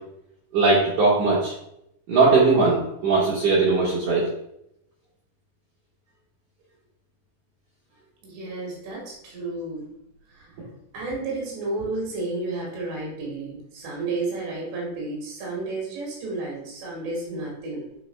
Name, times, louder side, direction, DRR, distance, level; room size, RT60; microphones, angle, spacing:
voice 1, 0.5-1.5 2.1-4.3, right 3 dB, 60° right, -6 dB, 2.4 m, -19 dB
voice 2, 8.2-9.8 10.3-10.5 10.9-17.8, right 2 dB, 80° right, -3 dB, 4.1 m, -32 dB
9.8 x 4.9 x 2.3 m, 0.77 s
omnidirectional pair, 4.9 m